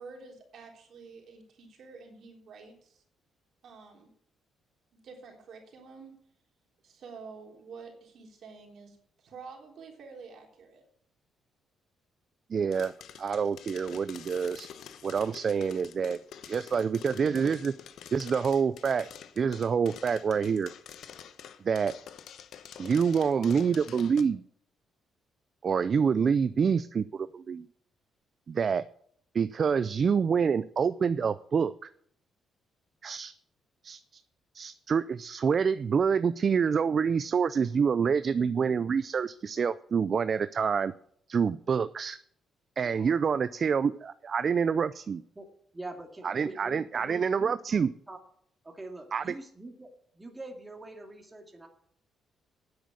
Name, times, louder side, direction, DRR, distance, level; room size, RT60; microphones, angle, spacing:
voice 1, 0.0-3.0 3.6-4.1 5.0-6.1 6.8-10.8, right 4 dB, 65° right, 1 dB, 3.7 m, -48 dB
voice 2, 12.5-12.9 13.2-14.7 15.0-16.2 16.4-17.7 18.1-19.1 19.4-20.7 21.6-22.0 22.8-24.4 25.6-27.7 28.5-28.9 29.3-31.9 33.0-33.3 33.8-34.2 34.5-40.9 41.3-42.2 42.8-45.2 46.2-47.9 49.1-49.4, right 6 dB, 45° right, 14 dB, 0.4 m, -27 dB
sound 1, 12.7-24.2, left 9 dB, 70° left, 1.0 m, -47 dB
voice 3, 42.8-43.6 44.4-44.5 45.3-45.5 45.7-47.8 48.1-48.2 48.6-51.7, right 2 dB, 15° right, 3 dB, 2.2 m, -45 dB
9.6 x 8.0 x 8.2 m, 0.65 s
cardioid pair, 90°, 0 cm